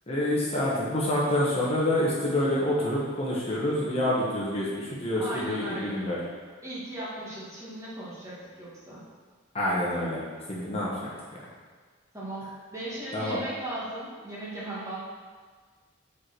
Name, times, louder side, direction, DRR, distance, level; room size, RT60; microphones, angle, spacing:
voice 1, 0.1-6.2 9.5-10.2 10.5-10.9 13.1-13.4, left 1 dB, 30° left, -6 dB, 1.1 m, -27 dB
voice 2, 5.2-6.1 6.6-9.0 12.1-15.0, right 1 dB, 15° right, -8 dB, 1.8 m, -37 dB
5.5 x 4.8 x 6.0 m, 1.5 s
head